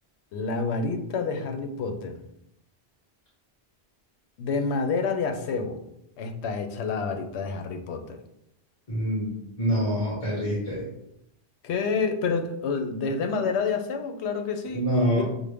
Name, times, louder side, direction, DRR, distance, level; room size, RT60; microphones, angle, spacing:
voice 1, 0.3-2.2 4.4-5.8 6.2-8.2 11.6-14.9 15.2-15.3, left 4 dB, 85° left, 6 dB, 0.9 m, -28 dB
voice 2, 8.9-9.3 9.6-10.8 14.7-15.2, equal, 30° left, -8 dB, 1.6 m, -25 dB
6.3 x 2.1 x 3.4 m, 0.79 s
omnidirectional pair, 1.1 m